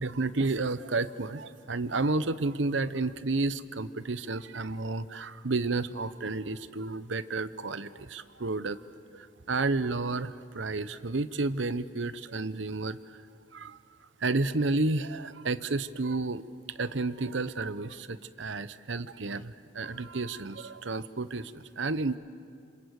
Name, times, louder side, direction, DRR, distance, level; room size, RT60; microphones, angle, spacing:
voice 1, 0.0-8.8 9.1-13.2 13.5-13.8 14.2-16.4 16.8-22.2, right 3 dB, 75° right, 14 dB, 0.9 m, -31 dB
27.0 x 26.5 x 8.3 m, 2.3 s
head